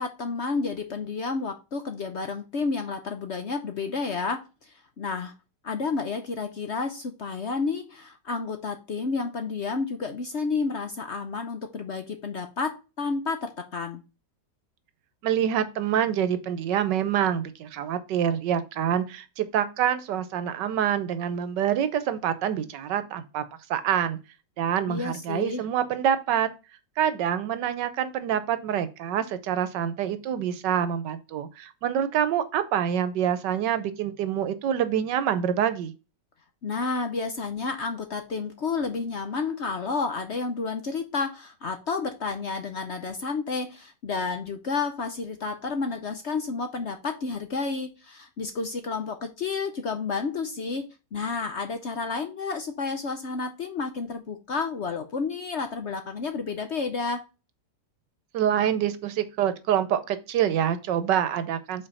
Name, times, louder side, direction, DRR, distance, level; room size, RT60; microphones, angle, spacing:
voice 1, 0.0-5.3 5.6-14.0 24.9-25.6 36.6-50.9 51.1-57.2, left 4 dB, 55° left, 0.8 m, -31 dB
voice 2, 15.2-23.4 23.7-24.2 24.6-26.5 27.0-35.9 58.3-61.9, right 9 dB, 80° right, 1.4 m, -26 dB
5.5 x 4.3 x 5.4 m
omnidirectional pair, 1.9 m